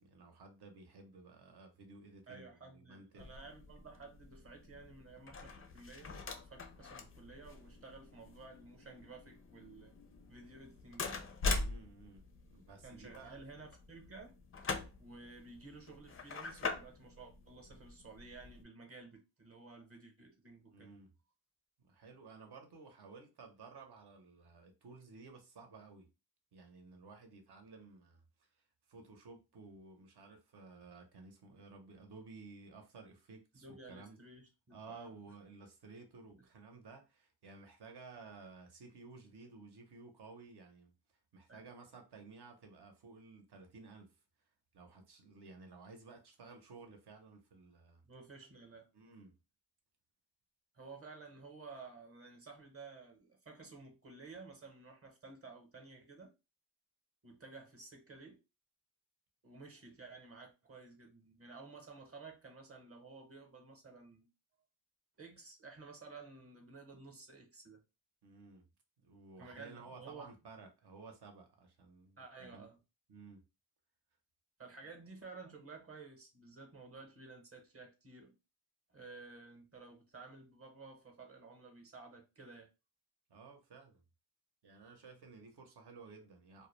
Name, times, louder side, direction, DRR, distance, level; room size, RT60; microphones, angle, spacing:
voice 1, 0.0-3.4 11.6-13.7 20.7-21.1 21.8-26.1 26.5-28.5 28.9-34.2 34.7-40.9 41.3-44.1 44.7-48.0 48.9-49.3 68.2-68.6 69.0-72.7 73.1-73.4 74.8-74.9 83.3-84.0 84.6-86.7, right 4 dB, 65° right, 0.8 m, -55 dB
voice 2, 2.3-6.2 6.5-9.9 10.3-11.2 12.8-14.4 15.0-20.9 33.5-35.1 41.5-41.7 48.0-48.9 50.7-56.3 57.2-58.4 59.4-64.3 65.2-67.8 69.4-70.3 72.2-72.8 74.6-78.4 78.9-82.7, right 3 dB, 30° right, 0.9 m, -53 dB
sound 1, 3.2-18.6, left 3 dB, 30° left, 0.4 m, -44 dB
2.2 x 2.1 x 3.0 m
cardioid pair, 80°, 43 cm